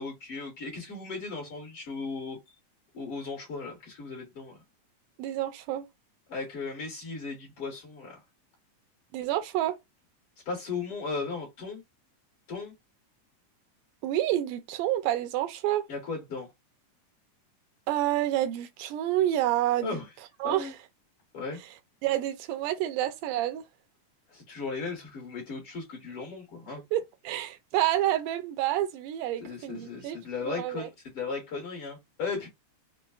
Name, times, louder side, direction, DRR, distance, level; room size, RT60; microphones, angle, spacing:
voice 1, 0.0-2.5 2.9-4.6 6.3-8.2 10.5-11.8 12.5-12.7 15.9-16.5 19.8-20.1 20.4-20.7 21.3-21.6 24.3-26.8 29.4-32.5, left 4 dB, 60° left, 1.7 m, -36 dB
voice 2, 5.2-5.9 9.1-9.8 14.0-15.9 17.9-20.0 20.4-20.7 22.0-23.6 26.9-30.2 30.4-30.9, right 13 dB, 85° right, 2.1 m, -28 dB
5.4 x 2.0 x 2.3 m
omnidirectional pair, 3.7 m